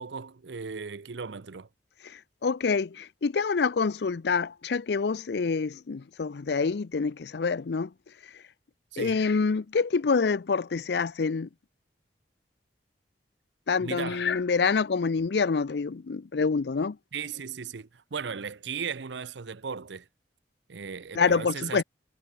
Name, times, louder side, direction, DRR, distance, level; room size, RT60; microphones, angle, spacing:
voice 1, 0.0-1.7 8.9-9.2 13.8-14.3 17.1-20.1 20.7-21.8, right 6 dB, 80° right, 0.7 m, -36 dB
voice 2, 2.4-7.9 9.0-11.5 13.7-16.9 21.2-21.8, left 5 dB, 65° left, 0.5 m, -26 dB
head